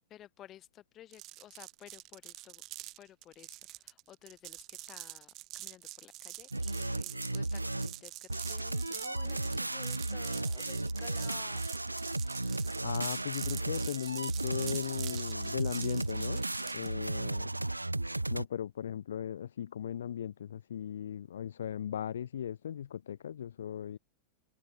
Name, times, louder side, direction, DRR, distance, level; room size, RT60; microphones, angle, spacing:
voice 1, 0.1-2.6 3.0-11.9 12.4-12.6, left 12 dB, 30° left, 1.3 m, -54 dB
sound 1, 1.1-16.9, right 18 dB, 40° right, 1.0 m, -46 dB
sound 2, 6.5-8.0 8.3-18.4, right 2 dB, 85° right, 0.5 m, -35 dB
voice 2, 12.8-16.4 16.7-17.5 18.3-24.0, left 9 dB, 65° left, 0.4 m, -37 dB
open air
figure-of-eight pair, 90°, 0 cm